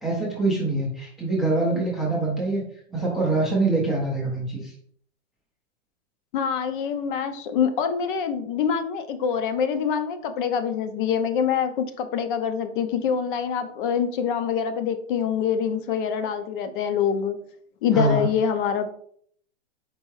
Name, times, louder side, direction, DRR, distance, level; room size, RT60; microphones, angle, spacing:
voice 1, 0.0-2.6 2.9-4.7 17.9-18.3, right 2 dB, ahead, -4 dB, 0.4 m, -24 dB
voice 2, 6.3-17.4 17.8-18.9, left 7 dB, 45° left, 9 dB, 0.6 m, -25 dB
4.5 x 3.5 x 3.1 m, 0.63 s
hypercardioid pair, 140°, 38 cm